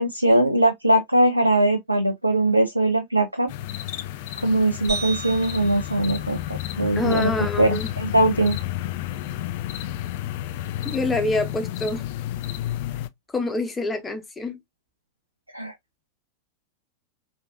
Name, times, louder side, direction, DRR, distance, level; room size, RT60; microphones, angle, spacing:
voice 1, 0.0-3.5 4.4-6.4 6.8-8.6 15.5-15.7, right 1 dB, 85° right, 0.4 m, -21 dB
sound 1, 3.5-13.1, left 13 dB, 50° left, 0.3 m, -31 dB
sound 2, 4.9-7.2, right 5 dB, 30° right, 2.8 m, -36 dB
voice 2, 7.0-7.9 10.8-12.0 13.3-14.6, left 2 dB, 10° left, 0.9 m, -26 dB
4.8 x 2.5 x 2.4 m
figure-of-eight pair, 90°, 0 cm